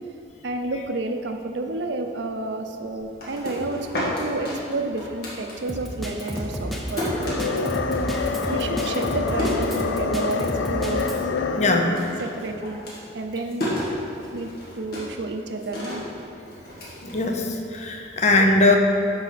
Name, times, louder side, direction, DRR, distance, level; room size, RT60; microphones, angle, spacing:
voice 1, 0.4-7.7 8.5-11.1 12.2-12.8 13.1-14.0 14.3-16.0, right 2 dB, 65° right, 5 dB, 0.6 m, -30 dB
sound 1, 3.0-5.9 6.2-10.4 10.7-11.3 11.5-17.8, left 1 dB, 55° left, 2.0 m, -33 dB
Drum kit, 5.7-11.2, equal, ahead, 0.6 m, -31 dB
sound 2, 6.9-12.3, left 4 dB, 75° left, 0.4 m, -27 dB
voice 2, 11.6-11.9 17.0-18.8, left 2 dB, 35° left, 3 dB, 0.7 m, -20 dB
11.5 x 4.9 x 4.2 m, 2.7 s
head